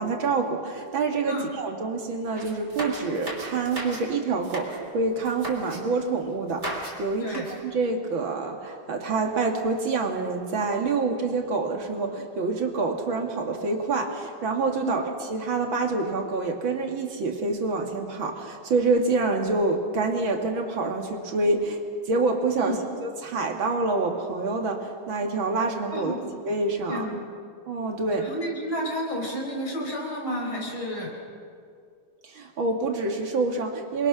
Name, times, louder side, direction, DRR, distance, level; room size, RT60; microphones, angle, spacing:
voice 1, 0.0-15.0 15.3-26.1 26.5-27.1 27.7-28.3 32.2-34.1, right 3 dB, 70° right, 3 dB, 2.8 m, -27 dB
sound 1, 2.4-4.1 4.3-4.8 5.2-5.8 6.5-7.0 7.3-7.6, right 1 dB, 30° right, 3.7 m, -36 dB
voice 2, 25.9-26.2 26.9-27.2 28.2-31.1, equal, 80° left, 0 dB, 5.4 m, -31 dB
27.5 x 22.5 x 6.1 m, 2.2 s
omnidirectional pair, 2.3 m